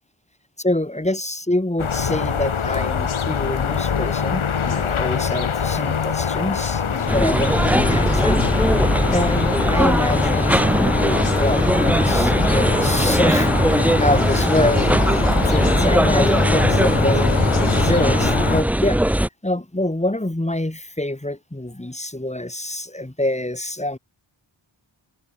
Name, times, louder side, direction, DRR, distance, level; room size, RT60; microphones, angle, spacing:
voice 1, 0.6-8.4 9.1-15.0 15.5-17.3 17.6-19.0 19.4-24.0, left 1 dB, 15° left, 2.8 m, -25 dB
sound 1, 1.8-18.6, left 7 dB, 80° left, 1.5 m, -24 dB
sound 2, 7.1-19.3, right 1 dB, 5° right, 0.5 m, -19 dB
wide cardioid pair, 60°, 49 cm